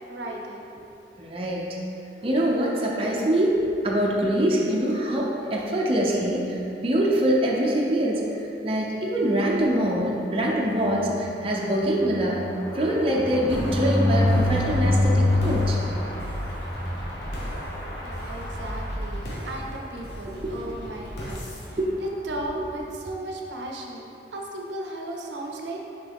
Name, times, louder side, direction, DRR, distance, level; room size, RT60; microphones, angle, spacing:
voice 1, 0.1-0.9 18.0-25.9, right 1 dB, 80° right, 0 dB, 0.6 m, -36 dB
voice 2, 1.2-1.6 2.2-8.2 8.6-12.4 12.7-15.8 20.4-20.8 21.8-22.0 22.5-22.7, right 1 dB, 30° right, -3 dB, 0.6 m, -24 dB
sound 1, 10.8-19.6 20.1-20.2 20.5-20.6 20.9-21.1, left 1 dB, 15° left, 0.8 m, -27 dB
sound 2, 13.5-22.9, equal, 65° left, 1.0 m, -37 dB
5.9 x 4.7 x 3.5 m, 2.8 s
head